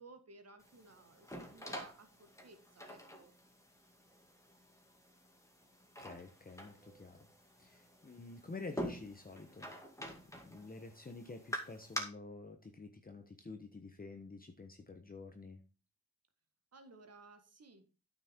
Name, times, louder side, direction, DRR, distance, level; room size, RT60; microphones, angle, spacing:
voice 1, 0.0-3.3 16.7-17.8, right 3 dB, 50° right, 6 dB, 1.8 m, -58 dB
sound 1, 0.6-12.0, equal, 10° left, 2.2 m, -47 dB
voice 2, 6.0-7.3 7.6-9.7 10.0-10.1 10.4-15.6, left 3 dB, 25° left, 5 dB, 1.1 m, -49 dB
9.1 x 6.0 x 4.5 m, 0.33 s
cardioid pair, 80°, 33 cm